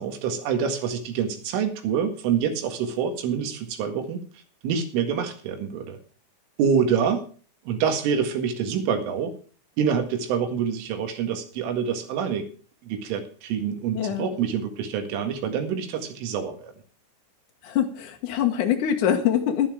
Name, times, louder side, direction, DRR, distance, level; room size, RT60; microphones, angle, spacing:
voice 1, 0.0-4.2 4.6-6.0 6.6-7.3 7.7-9.4 9.8-12.5 12.8-16.7, right 7 dB, 85° right, 6 dB, 4.4 m, -26 dB
voice 2, 13.9-14.3 17.6-19.7, left 9 dB, 75° left, 3 dB, 1.8 m, -24 dB
12.0 x 11.5 x 4.9 m, 0.40 s
omnidirectional pair, 5.6 m